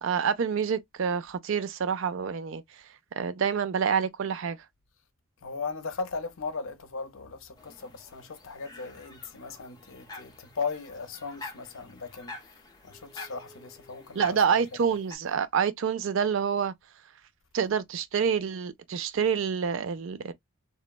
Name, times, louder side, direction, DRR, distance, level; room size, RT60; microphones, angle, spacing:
voice 1, 0.0-2.6 3.2-4.6 14.1-16.7 17.5-20.3, right 7 dB, 60° right, 0.4 m, -27 dB
voice 2, 5.4-12.3 12.8-14.4, left 4 dB, 65° left, 0.6 m, -37 dB
sound 1, 7.6-15.2, left 3 dB, 20° left, 0.7 m, -47 dB
3.0 x 2.1 x 2.2 m
head